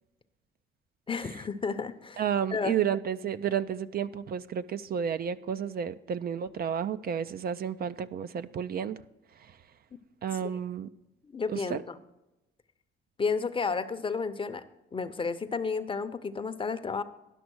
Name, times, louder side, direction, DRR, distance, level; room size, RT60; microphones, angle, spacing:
voice 1, 1.1-2.2 2.5-2.8 11.2-12.0 13.2-14.6 14.9-17.0, left 5 dB, 25° left, 11 dB, 0.7 m, -32 dB
voice 2, 2.2-9.0 9.4-9.6 10.2-10.9 11.5-11.8, right 8 dB, 50° right, 13 dB, 0.4 m, -31 dB
11.0 x 6.0 x 6.2 m, 0.96 s
cardioid pair, 90°, 20 cm